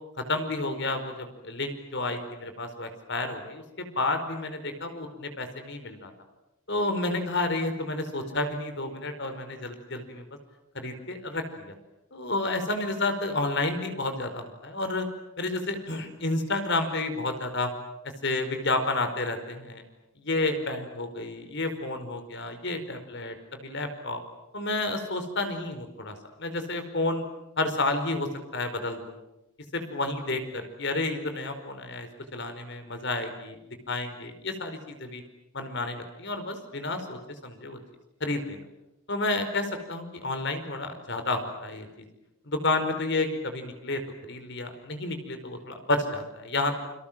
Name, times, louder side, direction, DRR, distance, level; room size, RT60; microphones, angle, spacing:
voice 1, 0.2-6.1 6.7-10.3 10.7-11.7 12.1-15.1 15.4-17.7 18.2-19.8 20.2-23.3 23.6-24.2 24.5-27.3 27.6-29.1 29.7-33.6 33.9-35.2 35.5-37.8 38.2-38.6 39.1-41.9 42.5-44.0 44.3-46.8, left 2 dB, 55° left, 8 dB, 4.9 m, -30 dB
29.5 x 26.0 x 7.6 m, 0.93 s
head